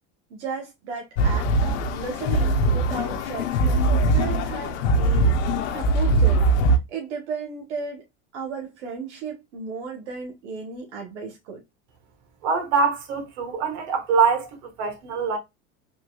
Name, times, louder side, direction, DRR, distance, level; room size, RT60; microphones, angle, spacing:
voice 1, 0.3-6.4 6.9-8.0 8.3-11.6, right 5 dB, 90° right, 1.2 m, -35 dB
sound 1, 1.2-6.8, right 1 dB, 80° left, 0.7 m, -21 dB
voice 2, 12.4-15.4, right 5 dB, 75° right, 1.4 m, -24 dB
3.7 x 2.7 x 2.3 m
supercardioid pair, 130°, 33 cm